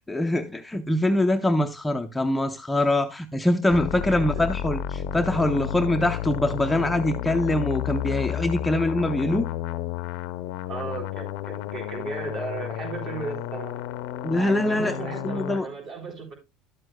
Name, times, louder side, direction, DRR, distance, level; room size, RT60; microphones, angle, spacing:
voice 1, 0.1-9.5 14.2-14.9 15.2-15.7, left 1 dB, 5° left, 0.6 m, -24 dB
sound 1, 3.7-15.6, left 11 dB, 70° left, 0.6 m, -32 dB
voice 2, 4.1-4.5 10.7-13.8 14.3-16.3, right 4 dB, 45° right, 4.1 m, -35 dB
12.0 x 7.7 x 2.2 m
supercardioid pair, 135°, 0 cm